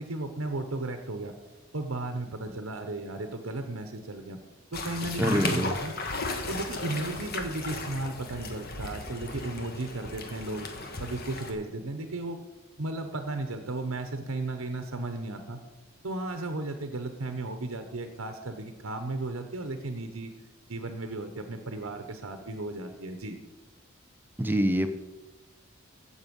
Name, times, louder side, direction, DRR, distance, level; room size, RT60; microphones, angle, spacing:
voice 1, 0.0-1.3 1.7-4.4 4.7-5.9 6.5-10.7 11.0-12.4 12.8-15.6 16.0-20.3 20.7-23.4, right 2 dB, 90° right, 7 dB, 1.1 m, -35 dB
sound 1, 4.7-11.5, left 3 dB, 50° left, 1.5 m, -36 dB
voice 2, 5.2-5.7 24.4-24.9, equal, 10° right, 7 dB, 0.8 m, -25 dB
15.5 x 7.1 x 5.4 m, 1.1 s
head